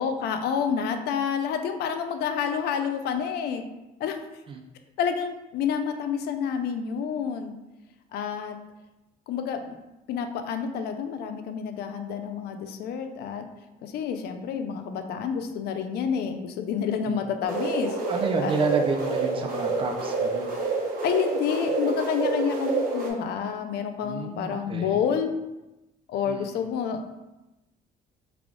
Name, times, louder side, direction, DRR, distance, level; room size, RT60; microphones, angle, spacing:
voice 1, 0.0-3.6 4.0-4.2 5.0-7.5 8.1-8.6 9.3-9.8 10.1-13.5 13.8-18.0 18.4-18.5 21.0-25.3 26.1-27.1, left 7 dB, 70° left, 7 dB, 0.4 m, -29 dB
sound 1, 17.4-23.1, right 3 dB, 55° right, 1.0 m, -28 dB
voice 2, 18.1-20.5 24.0-25.1 26.2-26.6, right 4 dB, 30° right, 4 dB, 0.4 m, -30 dB
3.4 x 2.3 x 3.6 m, 1.0 s
cardioid pair, 110°, 17 cm